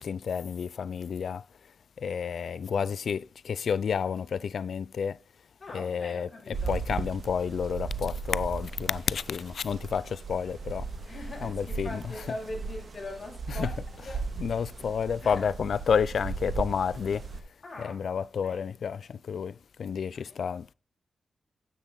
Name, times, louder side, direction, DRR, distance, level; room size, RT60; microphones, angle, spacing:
voice 1, 0.0-1.4 2.0-5.2 5.7-10.9 11.4-12.0 13.6-13.7 14.4-17.2 17.8-20.7, left 6 dB, 65° left, 0.4 m, -30 dB
voice 2, 5.6-6.8 11.0-13.8 14.1-14.3 15.2-15.5 17.6-18.0 18.4-18.7 20.1-20.4, left 2 dB, 30° left, 5.8 m, -41 dB
sound 1, 6.5-17.4, right 4 dB, 45° right, 1.8 m, -37 dB
10.0 x 8.9 x 3.9 m
wide cardioid pair, 145°, 0 cm